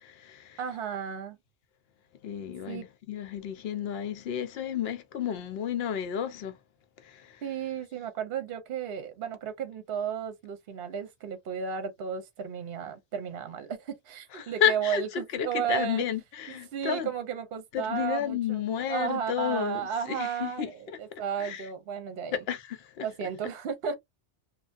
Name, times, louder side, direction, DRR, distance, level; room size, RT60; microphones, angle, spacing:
voice 1, 0.0-0.6 2.2-6.6 14.3-17.1 17.7-19.8 20.1-21.0 21.4-21.7 22.3-23.1, left 9 dB, 65° left, 0.8 m, -31 dB
voice 2, 0.6-1.4 2.7-2.8 7.4-16.0 16.5-18.6 18.9-22.4 23.0-24.0, right 8 dB, 60° right, 0.8 m, -34 dB
3.2 x 2.3 x 2.4 m
omnidirectional pair, 1.2 m